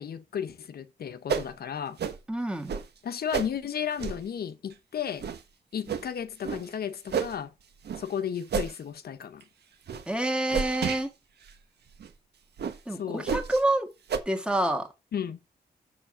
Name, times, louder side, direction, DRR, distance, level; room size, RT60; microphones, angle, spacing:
voice 1, 0.0-2.0 3.0-5.3 5.7-7.5 8.0-9.4 12.9-13.3 15.1-15.4, left 8 dB, 70° left, 0.9 m, -34 dB
sound 1, 1.3-1.5 2.0-2.2 2.7-2.8 3.3-3.5 4.0-4.2 4.7-4.8 5.2-5.4 5.9-6.0 6.4-6.6 7.1-7.4 7.8-8.0 8.5-8.8 9.2-9.4 9.9-10.0 10.5-11.0 11.5-11.6 12.0-12.1 12.6-12.8 13.3-13.6 14.1-14.2, right 6 dB, 85° right, 1.3 m, -30 dB
voice 2, 2.3-2.7 10.1-11.1 12.9-13.9 14.2-14.9, right 1 dB, 5° right, 1.7 m, -27 dB
7.1 x 6.7 x 6.1 m
wide cardioid pair, 165°, 17 cm